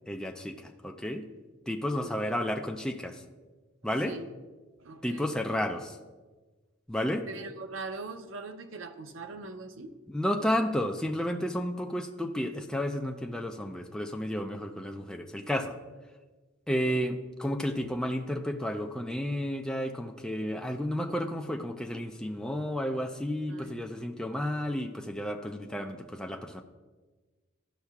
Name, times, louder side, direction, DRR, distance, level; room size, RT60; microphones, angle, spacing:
voice 1, 0.1-1.2 1.7-3.2 3.8-4.1 5.0-6.0 6.9-7.3 10.1-15.7 16.7-26.6, equal, 5° left, 3 dB, 0.4 m, -32 dB
voice 2, 2.0-2.4 4.0-4.3 4.8-5.3 7.3-10.0 16.7-17.0 23.5-24.1, right 3 dB, 85° right, 7 dB, 0.7 m, -42 dB
13.0 x 5.5 x 2.4 m, 1.3 s
head